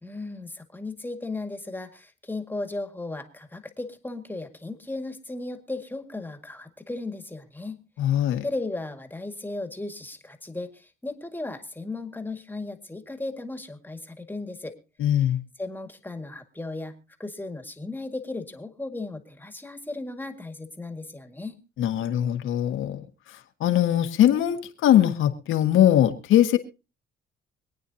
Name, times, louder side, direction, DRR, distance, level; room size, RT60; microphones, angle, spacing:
voice 1, 0.0-7.8 8.4-14.8 15.1-15.3 15.6-21.6, left 2 dB, 10° left, 6 dB, 2.0 m, -36 dB
voice 2, 8.0-8.4 15.0-15.4 21.8-23.0 23.6-26.6, left 11 dB, 85° left, 7 dB, 1.6 m, -21 dB
25.5 x 9.3 x 2.8 m, 0.31 s
cardioid pair, 90°, 20 cm